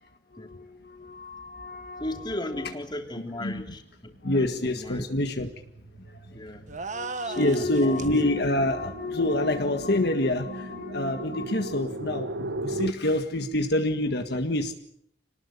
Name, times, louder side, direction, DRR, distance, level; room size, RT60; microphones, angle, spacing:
voice 1, 0.0-2.7 3.4-3.6 4.2-5.6 6.0-14.7, left 1 dB, 65° left, 6 dB, 1.8 m, -28 dB
voice 2, 2.0-5.0 6.3-6.7 7.2-8.0, left 1 dB, 25° left, 4 dB, 3.1 m, -36 dB
sound 1, 4.0-12.9, right 1 dB, 90° right, 1.0 m, -38 dB
sound 2, 6.7-8.2, right 4 dB, 45° right, 1.4 m, -36 dB
26.5 x 19.5 x 8.4 m, 0.72 s
head